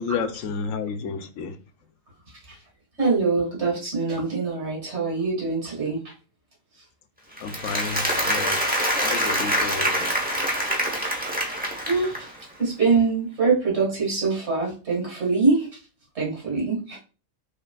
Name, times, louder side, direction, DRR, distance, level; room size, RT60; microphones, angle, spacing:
voice 1, 0.0-1.6 7.4-10.1, left 5 dB, 80° left, 1.0 m, -31 dB
voice 2, 3.0-6.1 11.8-12.3 12.6-15.8 16.2-17.0, right 4 dB, 55° right, 2.0 m, -24 dB
Applause, 7.4-12.4, equal, 10° right, 0.8 m, -25 dB
5.8 x 3.2 x 2.3 m
omnidirectional pair, 1.4 m